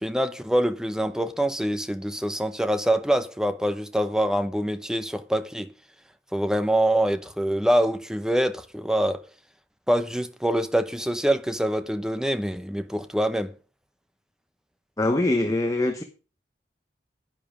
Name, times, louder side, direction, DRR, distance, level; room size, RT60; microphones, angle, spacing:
voice 1, 0.0-5.7 6.3-9.2 9.9-13.5, right 1 dB, 5° right, 0.7 m, -25 dB
voice 2, 15.0-16.0, left 2 dB, 20° left, 1.0 m, -23 dB
10.5 x 9.5 x 5.0 m
head